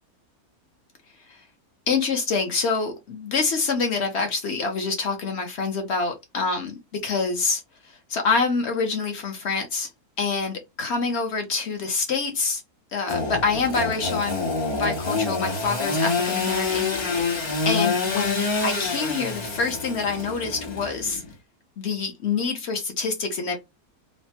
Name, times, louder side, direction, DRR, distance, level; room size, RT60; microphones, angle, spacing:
voice 1, 1.9-9.9 10.2-12.6 12.9-14.4 14.7-21.2 21.8-23.6, left 4 dB, 60° left, 0.7 m, -26 dB
Engine / Sawing, 13.1-21.3, left 4 dB, 45° left, 0.3 m, -27 dB
3.1 x 2.1 x 2.7 m
omnidirectional pair, 1.6 m